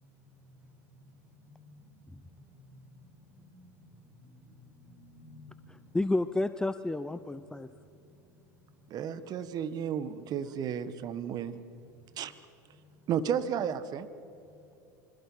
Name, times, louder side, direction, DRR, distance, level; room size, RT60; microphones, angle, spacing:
voice 1, 1.5-5.9 7.9-8.0, left 1 dB, 20° right, 5 dB, 5.0 m, -55 dB
voice 2, 5.7-7.7, left 2 dB, 5° left, 12 dB, 0.7 m, -31 dB
voice 3, 8.9-11.6 12.2-12.3 13.1-14.1, right 8 dB, 45° right, 13 dB, 1.5 m, -33 dB
26.0 x 26.0 x 5.7 m, 2.7 s
hypercardioid pair, 90°, 10 cm